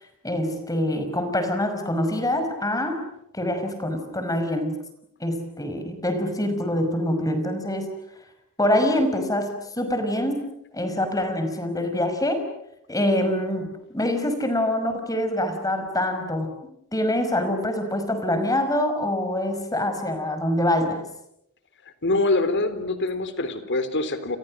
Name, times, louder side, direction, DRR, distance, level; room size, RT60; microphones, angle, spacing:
voice 1, 0.2-3.1 3.3-4.8 5.2-7.9 8.6-12.4 12.9-16.5 16.9-21.0, left 1 dB, 15° left, 8 dB, 5.5 m, -25 dB
voice 2, 22.0-24.4, left 2 dB, 55° left, 11 dB, 3.8 m, -24 dB
29.5 x 29.5 x 6.4 m, 0.78 s
head